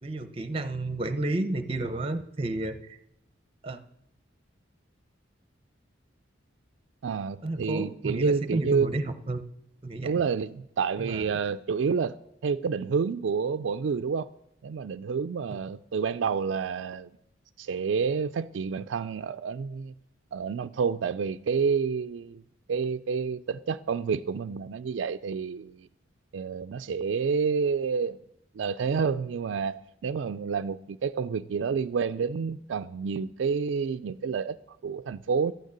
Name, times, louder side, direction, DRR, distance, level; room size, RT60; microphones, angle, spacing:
voice 1, 0.0-2.8 3.6-3.8 7.4-9.4 9.8-10.1 11.0-11.3, right 2 dB, 30° right, 0.7 m, -31 dB
voice 2, 7.0-8.9 10.0-12.2 12.4-14.3 14.6-17.1 17.6-19.9 20.3-22.4 22.7-25.9 26.3-28.2 28.5-35.5, right 5 dB, 70° right, 0.4 m, -29 dB
12.0 x 6.4 x 8.8 m
head